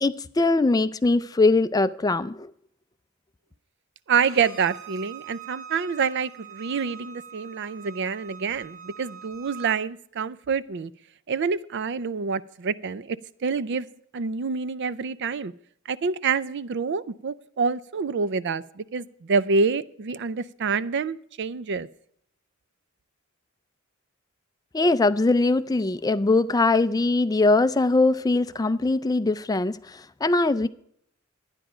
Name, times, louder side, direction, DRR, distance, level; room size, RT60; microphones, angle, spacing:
voice 1, 0.0-2.5 24.7-30.7, left 2 dB, 20° left, 0.4 m, -21 dB
voice 2, 4.1-10.9 11.3-13.9 14.1-15.5 15.9-21.9, right 5 dB, 55° right, 0.5 m, -27 dB
Bowed string instrument, 4.2-9.8, right 7 dB, 85° right, 2.7 m, -43 dB
12.5 x 9.8 x 5.0 m
head